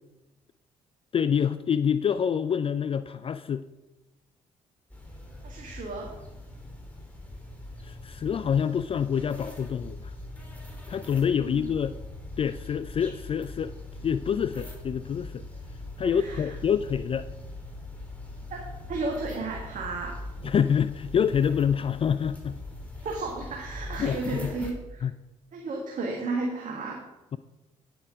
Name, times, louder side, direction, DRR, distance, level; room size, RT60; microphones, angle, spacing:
voice 1, 1.1-3.7 7.8-10.1 10.9-12.0 12.4-13.7 14.0-15.4 16.0-17.3 20.4-22.6 24.0-24.4 25.0-25.1, left 7 dB, 35° left, 14 dB, 0.4 m, -26 dB
sound 1, 4.9-24.7, left 2 dB, 10° left, 3.0 m, -41 dB
voice 2, 5.4-6.1 11.4-11.7 16.0-16.5 18.5-20.2 23.0-25.0 25.5-27.0, right 3 dB, 50° right, 0 dB, 1.7 m, -33 dB
9.6 x 7.8 x 5.1 m, 1.0 s
figure-of-eight pair, 40°, 17 cm